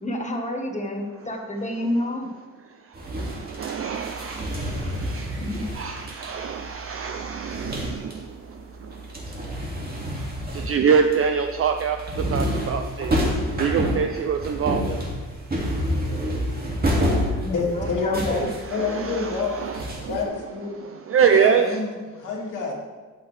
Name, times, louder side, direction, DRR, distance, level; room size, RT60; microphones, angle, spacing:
voice 1, 0.0-2.3 5.4-5.7 17.4-18.5, left 1 dB, 25° left, 2 dB, 1.4 m, -29 dB
sound 1, 2.9-8.4 8.7-20.2, equal, 30° right, 2.2 m, -29 dB
voice 2, 3.1-8.3 10.5-12.0 12.3-13.1 13.6-15.0 18.6-20.4 20.8-21.8, right 7 dB, 45° right, 6 dB, 0.5 m, -25 dB
voice 3, 17.5-18.4 18.7-19.6 20.0-21.0 21.3-22.7, left 4 dB, 90° left, -2 dB, 2.4 m, -27 dB
13.0 x 9.0 x 3.4 m, 1.4 s
wide cardioid pair, 150°, 30 cm